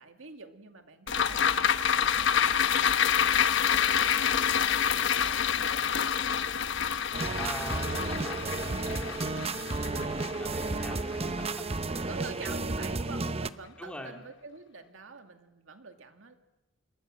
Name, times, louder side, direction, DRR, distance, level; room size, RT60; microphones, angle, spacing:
voice 1, 0.0-3.3 3.7-6.3 12.1-16.3, right 4 dB, 90° right, 6 dB, 2.3 m, -47 dB
sound 1, 1.1-11.6 11.9-12.0, left 8 dB, 65° left, 1.0 m, -27 dB
sound 2, 7.1-13.5, right 3 dB, 30° right, 0.8 m, -32 dB
voice 2, 7.4-11.6 13.8-14.2, equal, 5° left, 2 dB, 2.6 m, -43 dB
27.0 x 22.5 x 7.7 m, 0.98 s
head